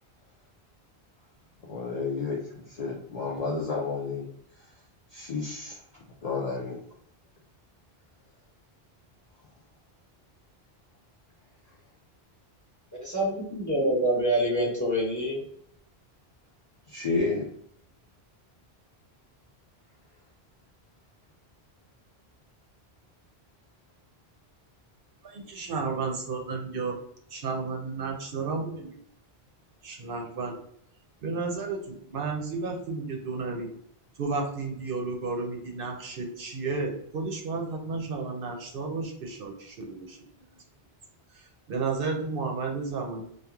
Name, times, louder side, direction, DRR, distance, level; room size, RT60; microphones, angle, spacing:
voice 1, 1.7-4.3 5.1-5.8 6.2-6.8 16.9-17.5, left 4 dB, 50° left, -3 dB, 0.5 m, -31 dB
voice 2, 13.0-15.4, right 1 dB, 20° left, -6 dB, 0.9 m, -26 dB
voice 3, 25.2-27.0 27.3-29.0 29.8-30.5 31.2-33.7 34.2-40.2 41.3-43.2, right 4 dB, 65° right, 1 dB, 0.7 m, -32 dB
2.9 x 2.2 x 2.3 m, 0.68 s
omnidirectional pair, 1.1 m